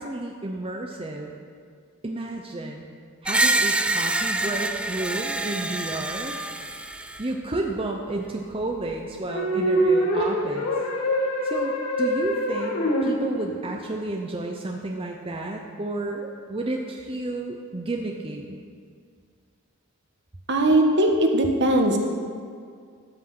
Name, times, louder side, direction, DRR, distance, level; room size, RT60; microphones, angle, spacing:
voice 1, 0.0-1.3 2.0-2.8 3.2-6.4 7.2-10.7 11.4-18.6, right 2 dB, 25° right, 1 dB, 0.8 m, -31 dB
Screech, 3.2-7.3, right 2 dB, 5° right, 0.4 m, -26 dB
sound 1, 9.3-13.7, equal, 90° left, 2.3 m, -24 dB
voice 2, 20.5-22.0, right 1 dB, 55° right, 3 dB, 1.3 m, -19 dB
13.5 x 6.2 x 7.7 m, 2.1 s
head